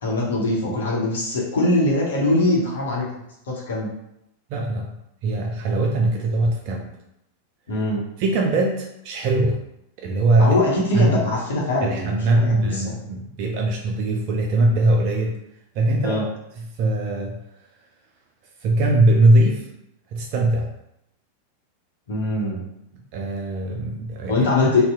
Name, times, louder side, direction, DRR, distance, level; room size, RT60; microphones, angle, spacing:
voice 1, 0.0-3.1 3.5-3.9 7.7-8.0 10.4-13.0 16.0-16.2 22.1-22.6 24.3-24.8, left 2 dB, 65° left, -4 dB, 0.7 m, -22 dB
voice 2, 4.5-5.0 5.2-6.9 8.2-9.6 10.0-10.6 10.9-11.3 11.8-15.4 15.7-16.2 16.6-17.4 18.6-19.7 20.1-20.7 23.1-24.5, right 2 dB, 45° right, 1 dB, 0.4 m, -21 dB
2.7 x 2.0 x 3.5 m, 0.82 s
figure-of-eight pair, 90°, 0 cm